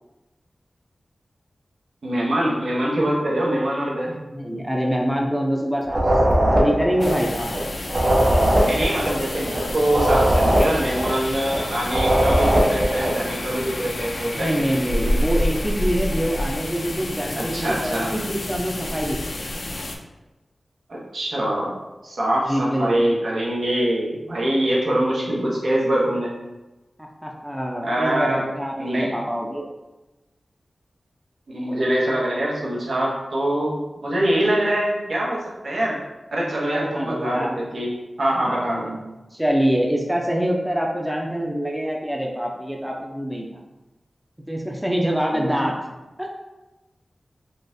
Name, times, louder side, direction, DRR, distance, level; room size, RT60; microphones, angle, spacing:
voice 1, 2.0-4.1 8.6-14.5 14.9-15.1 17.4-18.1 20.9-21.8 22.0-26.3 27.8-28.4 28.8-29.1 31.5-36.0 36.3-37.9 38.2-38.9 45.3-45.7, right 1 dB, 80° right, -5 dB, 0.9 m, -24 dB
voice 2, 4.3-7.5 14.3-19.4 22.5-23.2 27.0-29.6 36.6-37.7 38.4-43.6 44.5-45.7 46.2-46.3, equal, 5° right, -1 dB, 0.5 m, -25 dB
sound 1, 5.8-7.6 7.8-11.6 11.8-13.2, right 1 dB, 50° right, 0.8 m, -20 dB
sound 2, 7.0-20.0, left 1 dB, 60° left, 0.4 m, -29 dB
3.8 x 2.4 x 2.6 m, 1.1 s
wide cardioid pair, 55°, 0 cm